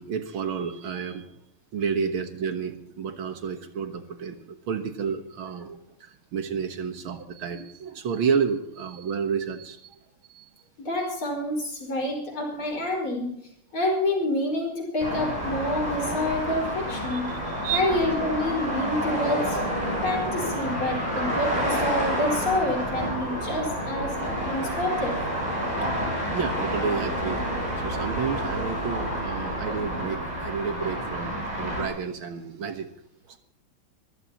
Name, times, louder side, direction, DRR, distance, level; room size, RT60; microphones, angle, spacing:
voice 1, 0.0-1.3 1.7-4.4 4.7-10.0 10.3-10.5 17.1-17.8 26.3-27.4 27.8-32.9 33.3-33.4, right 6 dB, 70° right, 7 dB, 2.1 m, -30 dB
voice 2, 10.8-13.3 13.7-17.3 17.7-19.6 20.0-24.1 24.4-25.2, left 1 dB, 70° left, 0 dB, 6.0 m, -27 dB
sound 1, 15.0-31.9, equal, 20° right, 8.0 m, -29 dB
23.5 x 15.0 x 3.0 m, 0.73 s
omnidirectional pair, 2.4 m